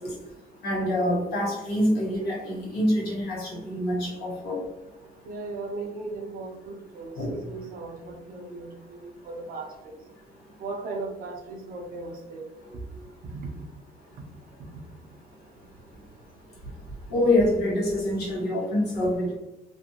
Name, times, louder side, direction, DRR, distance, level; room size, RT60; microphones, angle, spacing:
voice 1, 0.6-4.6 7.2-7.3 17.1-19.3, left 1 dB, 70° left, -5 dB, 1.3 m, -25 dB
voice 2, 5.2-10.0 10.6-12.5 12.7-12.8 13.3-13.6, right 3 dB, 60° right, 2 dB, 0.6 m, -37 dB
2.5 x 2.1 x 2.8 m, 0.99 s
cardioid pair, 110°, 17 cm